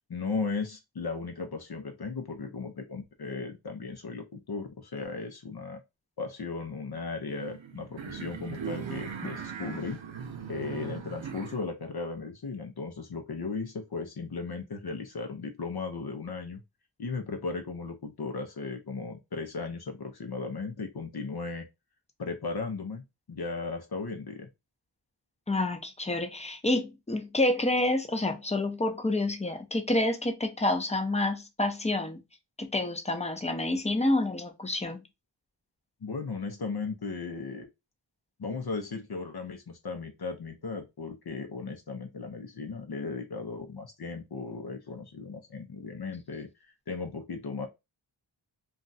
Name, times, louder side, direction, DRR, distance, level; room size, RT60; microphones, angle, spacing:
voice 1, 0.1-5.8 6.2-10.0 10.5-16.6 17.0-21.7 22.2-23.0 23.3-24.5 36.0-37.7 38.4-47.7, left 4 dB, 55° left, 0.7 m, -36 dB
sound 1, 7.3-11.6, right 7 dB, 80° right, 0.7 m, -39 dB
voice 2, 25.5-32.2 32.6-35.0, left 2 dB, 15° left, 0.7 m, -28 dB
2.4 x 2.3 x 3.9 m
wide cardioid pair, 70°, 45 cm